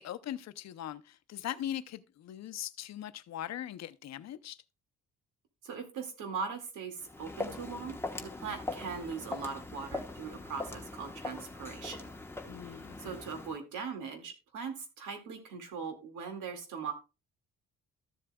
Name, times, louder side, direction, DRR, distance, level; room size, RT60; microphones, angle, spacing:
voice 1, 0.0-4.6 12.5-13.0, left 11 dB, 60° left, 0.7 m, -40 dB
voice 2, 5.6-12.1 12.6-16.9, right 5 dB, 85° right, 2.2 m, -40 dB
Walk footsteps, 7.0-13.6, left 2 dB, 10° left, 1.1 m, -41 dB
13.5 x 7.5 x 2.3 m
cardioid pair, 90°, 30 cm